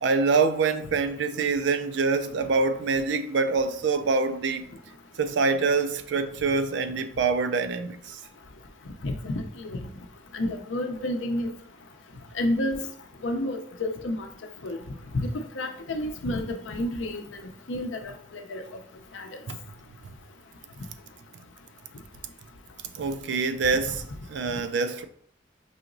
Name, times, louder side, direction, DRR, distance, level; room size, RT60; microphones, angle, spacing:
voice 1, 0.0-4.7 5.2-8.2 19.5-19.6 22.9-24.0 24.3-25.1, right 4 dB, 70° right, 0.4 m, -25 dB
voice 2, 9.0-9.4 9.7-9.8 10.3-11.5 12.4-12.8 13.2-14.3 14.6-14.8 15.1-17.2 17.7-18.0 18.3-18.6 19.1-19.3, left 1 dB, 85° left, 0.6 m, -29 dB
5.5 x 2.9 x 2.6 m
head